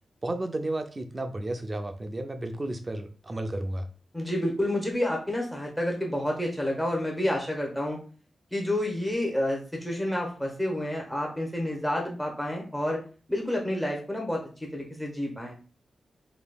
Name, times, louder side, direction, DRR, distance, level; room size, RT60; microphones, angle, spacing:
voice 1, 0.2-3.9, right 1 dB, 20° right, 7 dB, 0.4 m, -32 dB
voice 2, 4.1-8.0 8.5-13.0 13.3-15.6, left 1 dB, 5° left, -1 dB, 0.9 m, -29 dB
5.1 x 2.8 x 2.2 m, 0.38 s
wide cardioid pair, 175°, 0 cm